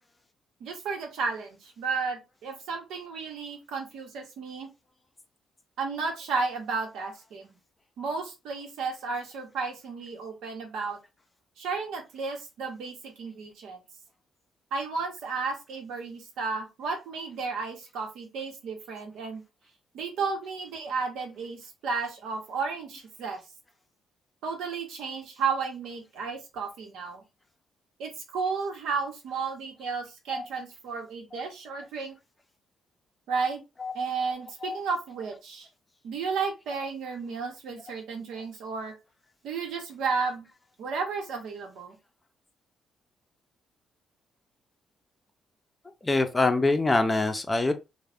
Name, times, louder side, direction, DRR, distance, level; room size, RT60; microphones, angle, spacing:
voice 1, 0.6-4.7 5.8-7.6 8.0-11.0 11.6-13.8 14.7-19.4 19.9-23.4 24.4-27.2 28.0-32.2 33.3-33.6 33.9-35.7 36.0-38.9 39.4-40.5 40.8-41.9, right 4 dB, 85° right, 0.9 m, -33 dB
voice 2, 46.0-47.7, left 2 dB, 20° left, 0.5 m, -24 dB
2.4 x 2.2 x 3.4 m
cardioid pair, 90°, 0 cm